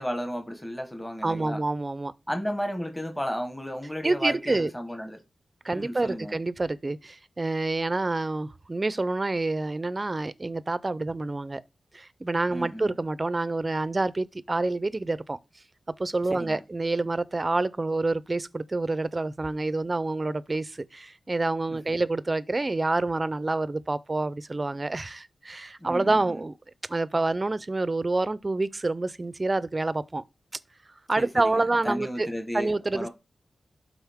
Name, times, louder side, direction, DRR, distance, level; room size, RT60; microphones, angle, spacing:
voice 1, 0.0-1.6 2.3-5.2 5.7-6.3 12.5-12.9 16.2-16.6 21.7-21.9 25.8-26.4 31.2-33.1, equal, 10° left, 1.2 m, -34 dB
voice 2, 1.2-2.1 4.0-4.7 5.6-11.6 11.9-15.4 16.0-26.6 26.9-30.2 31.1-32.3 32.5-33.1, right 2 dB, 30° right, 0.5 m, -27 dB
12.0 x 4.0 x 3.5 m
wide cardioid pair, 115°, 0 cm